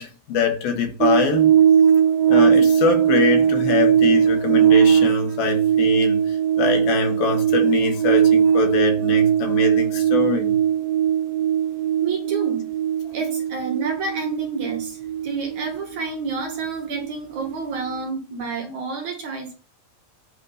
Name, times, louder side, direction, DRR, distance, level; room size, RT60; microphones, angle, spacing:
voice 1, 0.0-1.6 2.3-10.5, left 6 dB, 75° left, 3.4 m, -24 dB
sound 1, 1.0-17.6 17.8-18.0, right 8 dB, 80° right, 2.4 m, -19 dB
voice 2, 12.0-12.7 13.1-19.5, right 4 dB, 60° right, 2.5 m, -29 dB
8.4 x 4.7 x 6.5 m
omnidirectional pair, 4.4 m